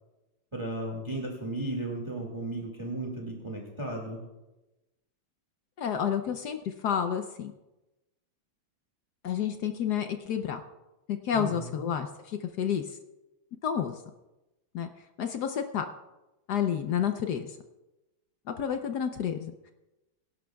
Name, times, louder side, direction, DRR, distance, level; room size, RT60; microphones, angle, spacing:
voice 1, 0.5-4.2 11.3-11.8, right 1 dB, 15° right, -1 dB, 1.9 m, -35 dB
voice 2, 5.8-7.5 9.2-10.6 11.1-12.8 13.6-13.9 14.7-14.9 15.2-15.9 16.5-17.5 18.5-19.5, left 8 dB, 65° left, 7 dB, 1.1 m, -30 dB
23.5 x 11.5 x 2.3 m, 1.0 s
omnidirectional pair, 2.2 m